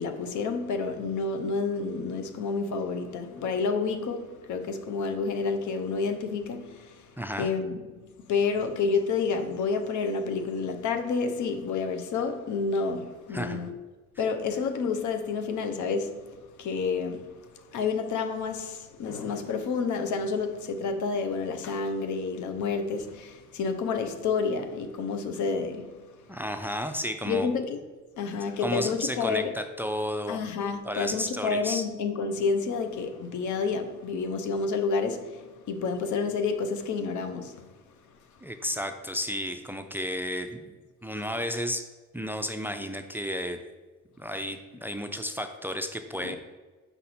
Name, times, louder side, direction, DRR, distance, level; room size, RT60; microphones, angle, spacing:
voice 1, 0.0-13.7 14.2-26.2 27.2-27.8 28.2-29.5 30.3-37.7 46.2-46.4, left 4 dB, 75° left, 0.7 m, -29 dB
voice 2, 7.2-7.5 13.3-13.6 26.3-27.5 28.6-30.4 30.8-31.8 38.4-40.7 41.0-41.8 42.1-43.6 44.2-46.4, equal, 5° right, 0.4 m, -32 dB
5.8 x 4.1 x 4.2 m
cardioid pair, 90°, 30 cm